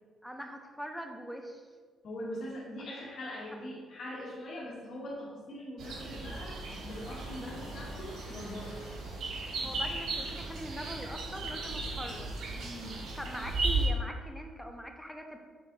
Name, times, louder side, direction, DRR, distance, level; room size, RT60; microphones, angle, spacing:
voice 1, 0.2-1.7 3.5-3.6 9.6-12.4 12.9-15.4, equal, ahead, 3 dB, 0.9 m, -42 dB
voice 2, 2.0-8.8 12.5-12.9, left 1 dB, 60° left, -4 dB, 1.8 m, -42 dB
sound 1, 5.8-13.9, right 3 dB, 70° right, 1.1 m, -36 dB
sound 2, 6.1-11.6, left 2 dB, 90° left, 1.1 m, -54 dB
6.8 x 4.1 x 4.0 m, 1.5 s
cardioid pair, 90°, 0 cm